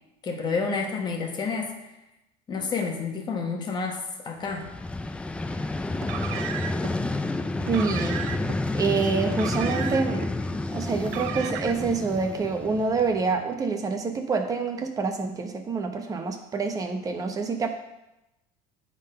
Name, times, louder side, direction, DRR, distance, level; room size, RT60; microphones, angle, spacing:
voice 1, 0.2-1.8 2.5-4.7, left 4 dB, 30° left, 2 dB, 1.3 m, -29 dB
Vehicle, 4.5-13.4, left 2 dB, 10° left, 0.3 m, -30 dB
Car, 5.9-6.9 7.6-8.6 9.3-10.3 11.0-11.9, right 10 dB, 80° right, 0.6 m, -35 dB
voice 2, 7.7-8.2 8.7-10.2 10.7-17.7, right 4 dB, 25° right, 5 dB, 0.9 m, -27 dB
8.8 x 3.9 x 5.4 m, 0.93 s
cardioid pair, 140°, 15 cm